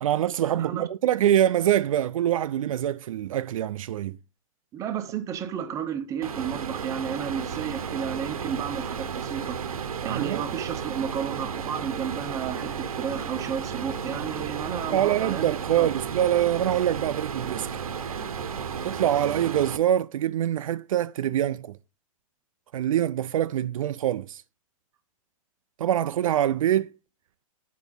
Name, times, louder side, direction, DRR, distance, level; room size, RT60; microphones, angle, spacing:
voice 1, 0.0-4.2 10.1-10.4 14.9-17.7 18.8-21.8 22.7-24.4 25.8-26.9, right 11 dB, 70° right, 0.4 m, -24 dB
voice 2, 0.5-0.9 4.7-9.6 10.0-15.5 15.8-15.9, right 8 dB, 20° right, 0.7 m, -32 dB
sound 1, 6.2-19.8, right 7 dB, 85° right, 1.0 m, -33 dB
8.4 x 4.7 x 5.3 m
hypercardioid pair, 145°, 18 cm